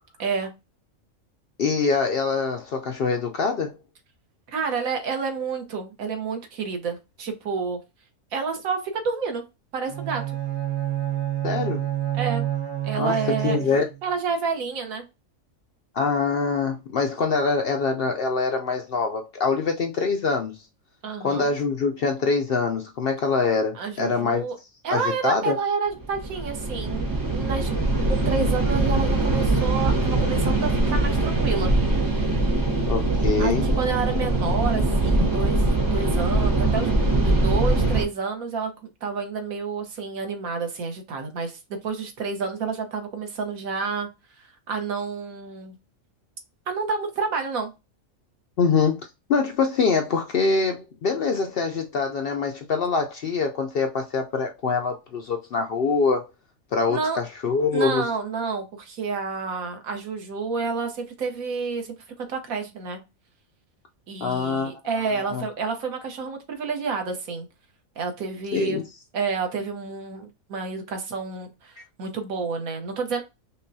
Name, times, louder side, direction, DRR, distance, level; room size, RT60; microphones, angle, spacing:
voice 1, 0.2-0.5 4.5-7.8 8.3-9.4 9.7-10.2 12.1-12.5 12.8-13.6 14.0-15.0 21.0-21.5 23.7-24.6 24.8-27.1 27.3-27.7 28.1-31.7 33.4-36.9 37.2-38.7 39.0-44.1 44.7-45.7 46.7-47.7 56.9-57.2 57.7-63.0 64.1-67.5 68.0-68.8 69.1-73.2, right 5 dB, 85° right, 1.4 m, -29 dB
voice 2, 1.6-3.7 11.4-11.9 13.0-13.8 15.9-20.5 21.2-24.4 24.9-25.6 32.9-33.6 48.6-49.0 49.3-56.2 56.7-58.1 64.2-64.7 65.3-65.4 68.5-68.8, left 4 dB, 65° left, 0.6 m, -24 dB
Bowed string instrument, 9.9-14.1, right 12 dB, 45° right, 0.9 m, -28 dB
sound 1, 26.0-38.0, right 2 dB, 20° right, 0.6 m, -22 dB
5.3 x 2.2 x 2.7 m
omnidirectional pair, 1.4 m